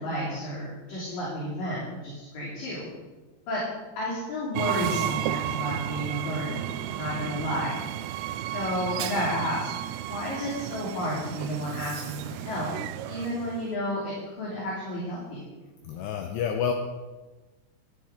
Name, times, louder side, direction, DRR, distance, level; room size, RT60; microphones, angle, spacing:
voice 1, 0.0-2.9 3.5-3.6 4.0-7.8 8.5-9.7 10.0-12.7 13.1-15.4, equal, 50° left, -6 dB, 4.2 m, -31 dB
Train, 4.6-13.7, right 13 dB, 90° right, 3.2 m, -33 dB
voice 2, 15.9-16.7, left 8 dB, 85° left, 4 dB, 2.5 m, -28 dB
13.5 x 11.5 x 5.0 m, 1.2 s
omnidirectional pair, 5.8 m